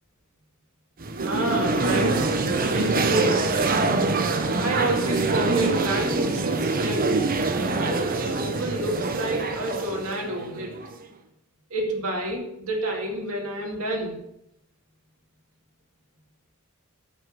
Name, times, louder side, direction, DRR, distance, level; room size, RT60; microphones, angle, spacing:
sound 1, 1.0-11.0, right 3 dB, 40° right, 0.9 m, -25 dB
voice 1, 1.2-3.5 4.6-7.0 7.8-10.8 11.7-14.2, right 1 dB, 70° right, 0 dB, 2.3 m, -29 dB
8.1 x 7.2 x 5.8 m, 0.80 s
head